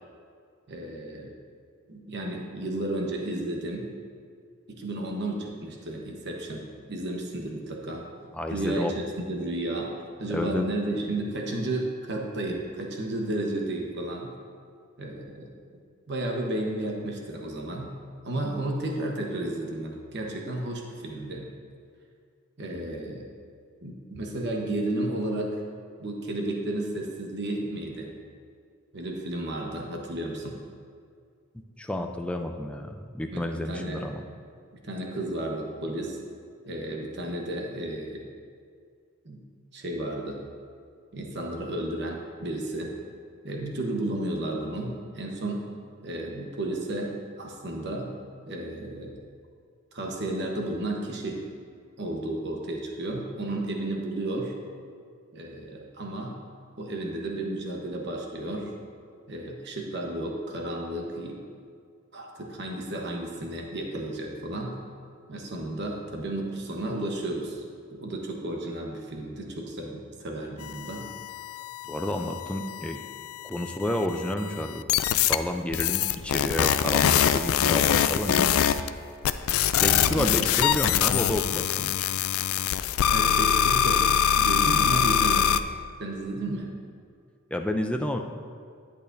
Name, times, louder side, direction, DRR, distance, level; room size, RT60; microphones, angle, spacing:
voice 1, 0.7-1.3 1.9-3.9 4.7-6.6 6.9-8.1 8.5-9.9 10.2-14.3 15.0-15.6 16.1-17.9 18.2-21.5 22.6-23.2 23.8-25.6 26.0-28.1 28.9-30.6 33.3-34.0 34.8-36.2 36.7-38.2 39.2-39.4 39.7-40.4 41.1-42.9 43.4-45.6 46.0-48.1 48.5-49.2 49.9-51.4 52.0-54.5 55.3-56.4 56.8-58.7 59.3-61.4 62.1-64.8 65.3-67.6 67.9-71.0 78.3-78.5 80.1-80.4 83.1-84.1 84.3-85.6 86.0-86.7, right 1 dB, 50° right, 0 dB, 1.0 m, -32 dB
voice 2, 8.3-8.9 10.3-10.7 31.8-34.2 71.8-73.0 73.4-74.8 75.1-78.8 79.8-82.1 87.5-88.2, left 1 dB, 5° left, 4 dB, 0.4 m, -30 dB
sound 1, 70.6-73.2 73.5-74.1 74.9-75.4 75.7-78.9 79.2-85.6, left 9 dB, 75° left, 0.3 m, -23 dB
11.0 x 8.5 x 2.6 m, 2.2 s
head